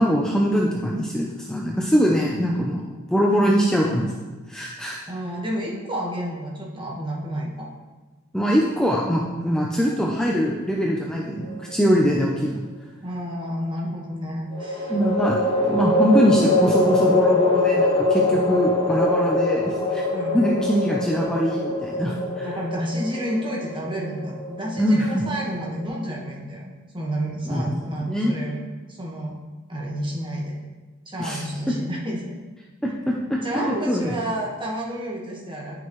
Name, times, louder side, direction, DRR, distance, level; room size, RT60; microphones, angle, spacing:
voice 1, 0.0-2.8 3.1-4.1 4.5-5.0 8.3-12.5 14.9-20.0 20.3-22.5 24.8-25.2 27.5-28.3 31.2-31.4 31.7-31.8 32.8-34.1, equal, 5° left, -3 dB, 0.5 m, -22 dB
voice 2, 5.1-7.7 13.0-15.2 20.1-20.4 22.4-28.6 28.9-29.4 29.7-30.6 31.1-32.4 33.4-35.8, equal, 25° right, -3 dB, 1.3 m, -30 dB
sound 1, 11.4-12.2 14.5-25.8, left 2 dB, 25° left, 1.0 m, -23 dB
10.0 x 5.6 x 3.1 m, 1.3 s
head